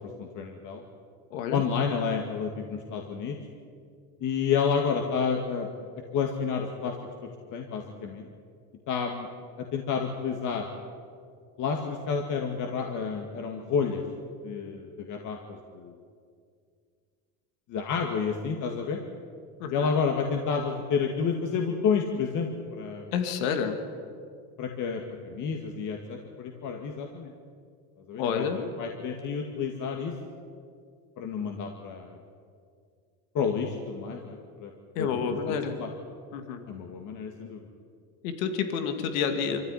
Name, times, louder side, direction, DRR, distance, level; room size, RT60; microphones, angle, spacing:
voice 1, 0.2-0.8 1.5-3.4 4.2-5.7 6.1-6.9 7.5-8.3 8.9-9.3 9.6-10.7 11.6-14.0 14.4-15.9 17.7-19.0 19.7-23.0 24.6-27.3 28.1-30.1 31.2-32.2 33.3-34.7 35.0-35.9 36.7-37.6, left 6 dB, 45° left, 2 dB, 2.2 m, -30 dB
voice 2, 1.3-1.6 19.6-19.9 23.1-23.8 28.2-28.6 34.9-35.8 36.3-36.6 38.2-39.6, left 7 dB, 80° left, 6 dB, 2.5 m, -29 dB
24.0 x 15.0 x 9.9 m, 2.2 s
supercardioid pair, 120°, 41 cm